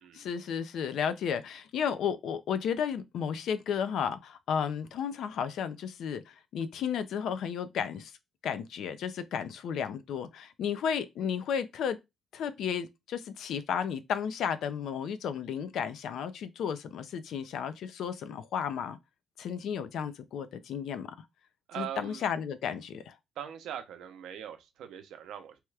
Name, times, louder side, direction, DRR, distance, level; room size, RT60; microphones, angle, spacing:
voice 1, 0.1-8.1 8.4-12.0 12.3-19.0 19.4-21.1 21.8-23.1, left 7 dB, 75° left, 0.4 m, -33 dB
voice 2, 21.7-22.3 23.4-25.6, right 10 dB, 85° right, 0.6 m, -41 dB
2.9 x 2.3 x 3.3 m
cardioid pair, 90°, 0 cm